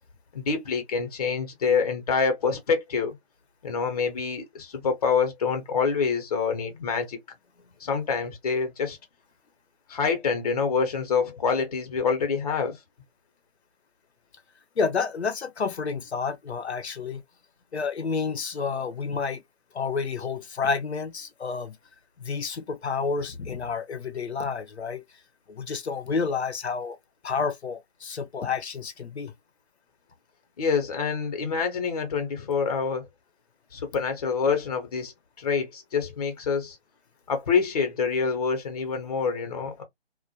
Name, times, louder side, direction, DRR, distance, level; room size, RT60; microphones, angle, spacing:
voice 1, 0.3-3.2 3.6-7.2 7.8-9.0 9.9-12.8 30.6-33.1 33.7-35.1 35.4-36.8 37.3-39.8, left 5 dB, 35° left, 0.7 m, -26 dB
voice 2, 14.8-17.2 17.7-19.4 19.7-21.7 22.2-25.0 25.5-27.0 27.2-29.3, left 5 dB, 85° left, 0.7 m, -29 dB
2.3 x 2.1 x 2.6 m
figure-of-eight pair, 150°, 32 cm